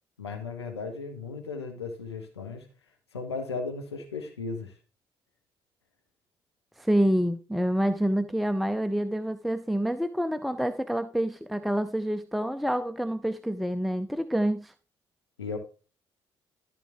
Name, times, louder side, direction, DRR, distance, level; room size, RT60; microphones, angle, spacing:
voice 1, 0.2-2.7 3.1-4.7 15.4-15.6, left 4 dB, 85° left, 1.2 m, -36 dB
voice 2, 6.8-14.7, equal, ahead, 0.6 m, -27 dB
13.5 x 5.1 x 3.6 m
figure-of-eight pair, 45°, 13 cm